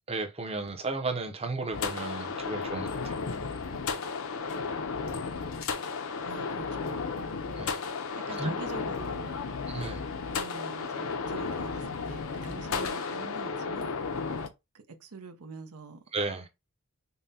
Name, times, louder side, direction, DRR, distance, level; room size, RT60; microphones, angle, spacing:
voice 1, 0.1-3.2 7.6-7.9 8.4-8.5 9.7-10.0 16.1-16.5, right 3 dB, 25° right, 0.6 m, -34 dB
sound 1, 1.7-14.5, left 4 dB, 65° left, 0.6 m, -34 dB
voice 2, 6.2-7.0 8.2-9.3 9.7-9.9 10.3-13.9 14.7-16.0, right 4 dB, 90° right, 0.7 m, -45 dB
5.4 x 2.1 x 2.7 m
head